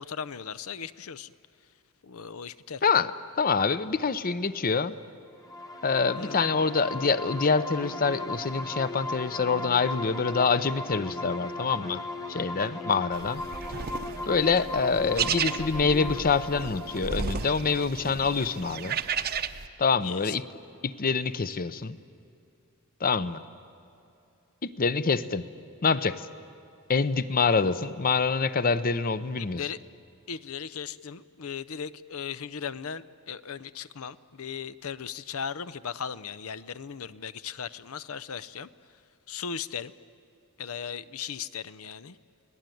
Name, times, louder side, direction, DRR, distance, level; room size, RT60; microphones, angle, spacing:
voice 1, 0.0-1.3 2.0-2.8 6.1-6.4 12.5-12.7 20.0-20.3 29.4-29.8 30.3-38.7 39.3-39.9 40.6-42.2, left 7 dB, 75° left, 16 dB, 0.7 m, -37 dB
voice 2, 2.8-3.1 3.4-4.9 5.8-12.0 12.3-13.4 14.3-19.0 19.8-20.4 20.8-22.0 23.0-23.4 24.6-25.4 25.8-26.3 26.9-29.6, left 5 dB, 40° left, 14 dB, 0.7 m, -26 dB
sound 1, 5.4-18.9, left 2 dB, 15° left, 1.5 m, -37 dB
sound 2, 13.1-19.7, right 6 dB, 45° right, 0.8 m, -34 dB
29.0 x 19.0 x 9.3 m, 2.6 s
head